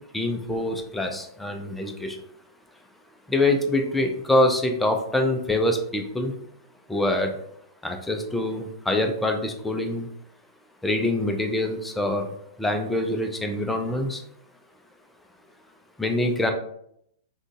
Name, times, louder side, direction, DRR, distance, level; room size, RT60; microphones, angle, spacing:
voice 1, 0.1-2.2 3.3-6.3 6.9-7.4 7.8-10.1 10.8-14.2 16.0-16.5, left 1 dB, 5° left, 3 dB, 0.4 m, -25 dB
3.7 x 2.2 x 2.5 m, 0.71 s
figure-of-eight pair, 110°, 3 cm